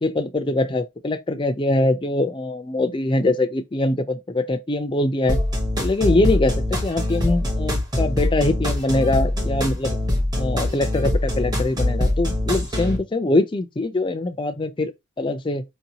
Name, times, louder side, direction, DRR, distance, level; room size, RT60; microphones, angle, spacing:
voice 1, 0.0-5.4 5.8-10.0 10.4-14.9 15.2-15.6, left 2 dB, 25° left, 0.4 m, -23 dB
sound 1, 5.3-13.0, left 1 dB, 20° right, 0.9 m, -23 dB
4.4 x 2.7 x 2.8 m
head